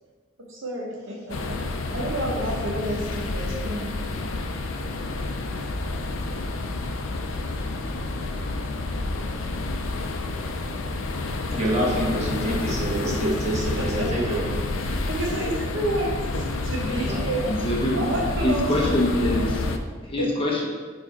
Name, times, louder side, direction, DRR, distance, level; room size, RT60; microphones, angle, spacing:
voice 1, 0.4-4.0 13.8-14.4 14.7-17.5 17.9-19.5 20.2-20.3, right 1 dB, 80° right, -1 dB, 1.3 m, -30 dB
sound 1, 1.3-19.8, left 2 dB, 85° left, 0.5 m, -29 dB
voice 2, 11.5-14.5 16.9-17.3, right 1 dB, 35° right, -5 dB, 1.4 m, -27 dB
voice 3, 17.5-18.0 18.4-19.6 20.0-20.7, left 1 dB, 30° left, -1 dB, 0.8 m, -24 dB
4.9 x 4.7 x 4.3 m, 1.5 s
head